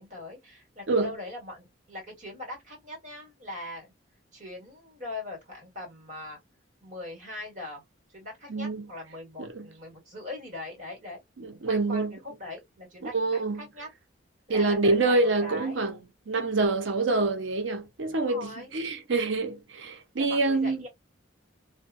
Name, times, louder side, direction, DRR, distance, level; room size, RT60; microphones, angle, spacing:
voice 1, 0.0-3.9 4.3-6.4 6.8-7.8 8.1-13.9 14.5-15.9 18.1-18.7 20.2-20.9, left 2 dB, 40° right, 1.8 m, -41 dB
voice 2, 8.5-8.9 9.4-9.7 11.4-12.2 13.0-13.7 14.5-16.0 16.3-20.8, right 3 dB, 80° right, 0.7 m, -26 dB
2.8 x 2.1 x 2.5 m
head